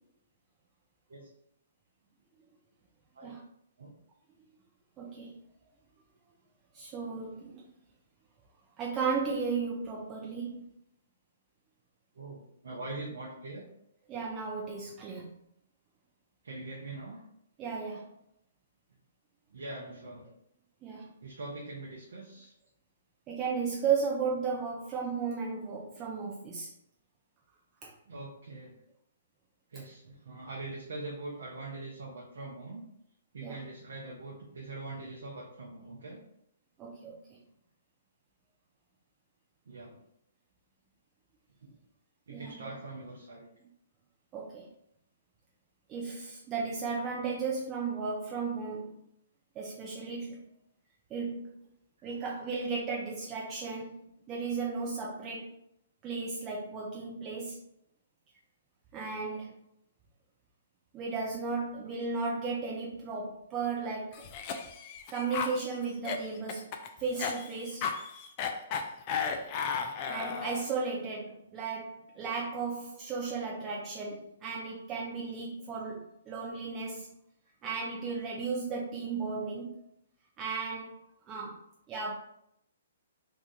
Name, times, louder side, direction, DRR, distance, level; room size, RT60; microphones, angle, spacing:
voice 1, 5.0-5.3 6.7-7.7 8.8-10.6 14.1-15.3 17.6-18.1 20.8-21.1 23.3-26.7 27.8-27.9 33.4-33.6 36.8-37.4 42.3-42.7 44.3-44.7 45.9-49.0 49.5-50.4 51.1-51.5 52.0-54.0 54.3-55.5 56.0-57.6 58.9-59.5 60.9-64.2 65.1-66.7 67.0-67.8 70.1-77.1 77.6-79.8 80.4-81.0 81.3-81.6 81.9-82.1, right 5 dB, 25° right, -3 dB, 0.6 m, -35 dB
voice 2, 12.1-13.7 16.4-17.3 19.5-20.4 21.2-22.5 28.1-28.8 29.7-32.8 33.3-36.2 39.7-40.0 41.6-41.7 42.3-43.5 52.0-52.1, right 2 dB, 75° right, -3 dB, 0.8 m, -43 dB
Cough, 64.1-70.7, left 6 dB, 35° left, 0.4 m, -35 dB
2.9 x 2.4 x 3.9 m, 0.73 s
hypercardioid pair, 135°, 0 cm